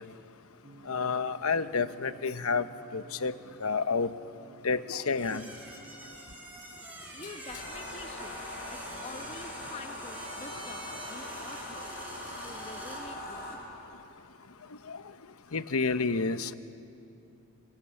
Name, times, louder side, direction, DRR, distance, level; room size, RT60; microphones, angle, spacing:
sound 1, 0.6-5.8, right 1 dB, 35° right, 4.3 m, -55 dB
voice 1, 0.9-2.7 2.9-3.3 3.6-4.1 4.6-5.4 14.9-15.0 15.5-16.5, left 4 dB, 75° left, 12 dB, 0.9 m, -29 dB
sound 2, 5.1-13.1, right 1 dB, 10° right, 4.9 m, -46 dB
voice 2, 7.1-8.3 8.7-11.9 12.4-13.6, left 2 dB, 25° left, 7 dB, 1.1 m, -47 dB
sound 3, 7.5-13.5, left 1 dB, 45° left, 5.2 m, -41 dB
26.5 x 26.0 x 7.8 m, 2.8 s
head